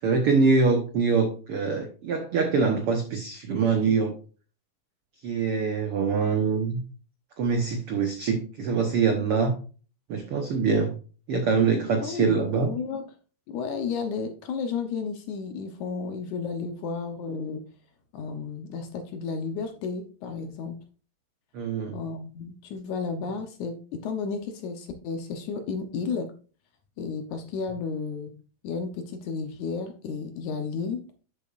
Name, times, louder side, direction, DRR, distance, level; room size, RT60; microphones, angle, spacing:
voice 1, 0.0-4.2 5.2-6.8 7.4-9.5 10.1-10.9 11.3-12.7 21.5-22.0, right 5 dB, 90° right, 5 dB, 1.2 m, -24 dB
voice 2, 12.0-13.0 13.5-17.6 18.1-20.8 21.9-26.3 27.0-28.3 28.6-31.0, left 5 dB, 70° left, 7 dB, 2.0 m, -32 dB
11.0 x 6.9 x 2.5 m, 0.37 s
omnidirectional pair, 4.3 m